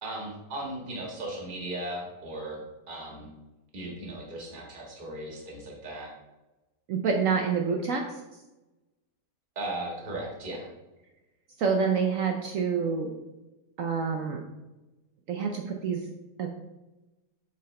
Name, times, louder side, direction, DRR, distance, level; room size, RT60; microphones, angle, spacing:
voice 1, 0.0-2.6 2.9-3.3 3.7-6.1 9.5-10.7, right 1 dB, 30° right, -2 dB, 1.6 m, -37 dB
voice 2, 6.9-8.2 11.6-13.1 13.8-14.4 15.3-16.0 16.4-16.5, right 5 dB, 70° right, 2 dB, 0.8 m, -27 dB
7.6 x 4.1 x 3.2 m, 1.0 s
omnidirectional pair, 1.9 m